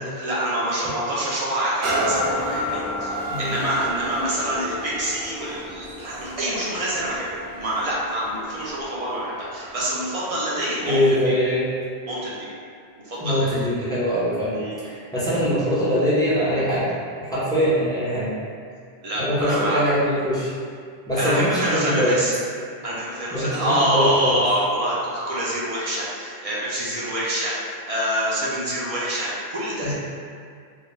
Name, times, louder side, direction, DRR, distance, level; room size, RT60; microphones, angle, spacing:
voice 1, 0.0-2.2 2.5-7.3 7.5-11.3 12.1-12.5 13.0-13.6 14.5-14.9 19.0-19.8 21.2-22.3 22.8-29.9, right 1 dB, 45° right, -7 dB, 0.5 m, -26 dB
sound 1, 1.8-9.4 10.0-10.1, equal, 90° right, 0.9 m, -30 dB
voice 2, 3.3-3.6 10.8-11.7 13.2-14.5 15.1-16.9 17.2-18.3 19.2-20.5 21.1-22.2 23.3-24.4 29.8-29.9, equal, 5° left, -11 dB, 0.5 m, -22 dB
2.3 x 2.1 x 3.0 m, 2.2 s
omnidirectional pair, 1.1 m